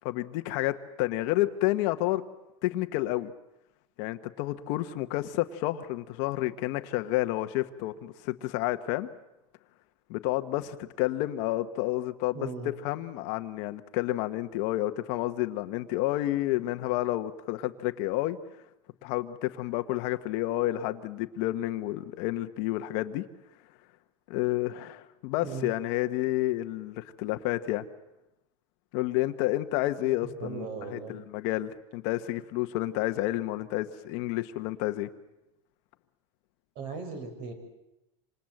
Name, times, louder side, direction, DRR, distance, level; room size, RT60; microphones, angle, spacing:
voice 1, 0.0-2.2 2.6-3.3 4.0-9.1 10.1-12.5 12.8-18.4 19.0-23.2 24.3-27.8 28.9-30.6 30.9-35.1, left 16 dB, 45° left, 9 dB, 1.2 m, -30 dB
voice 2, 12.3-12.7 25.4-25.7 30.2-31.1 36.8-37.5, right 4 dB, 45° right, 8 dB, 6.2 m, -38 dB
27.0 x 27.0 x 7.9 m, 0.91 s
supercardioid pair, 170°, 16 cm